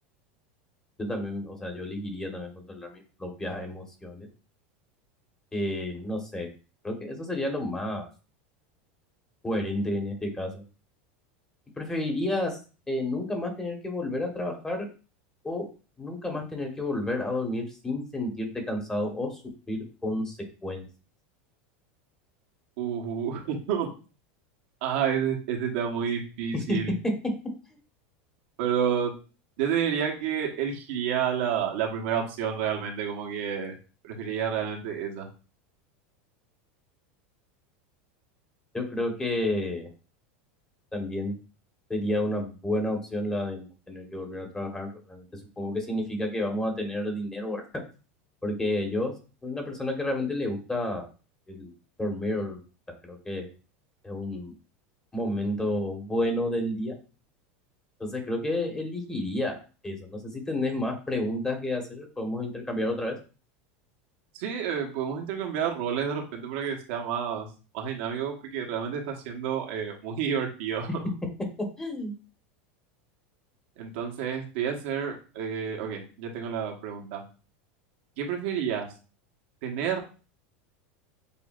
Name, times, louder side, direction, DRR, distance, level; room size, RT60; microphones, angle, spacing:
voice 1, 1.0-4.3 5.5-6.5 6.8-8.1 9.4-10.6 11.8-12.6 12.9-14.9 15.4-15.6 16.0-19.4 19.7-20.4 20.6-20.8 26.7-26.8 38.7-39.9 40.9-41.3 41.9-45.3 45.6-47.6 48.4-49.1 49.4-51.1 51.5-51.7 52.0-52.6 53.0-53.5 54.0-54.5 55.1-56.9 58.0-59.6 59.8-63.2 71.8-72.1, left 1 dB, 10° left, 2 dB, 1.3 m, -30 dB
voice 2, 22.8-23.9 24.8-26.9 28.6-29.1 29.6-33.7 34.0-35.3 64.3-67.5 67.7-70.9 73.8-77.2 78.2-78.9 79.6-80.0, right 8 dB, 70° right, 1 dB, 1.2 m, -30 dB
6.9 x 2.6 x 2.5 m, 0.34 s
supercardioid pair, 130°, 6 cm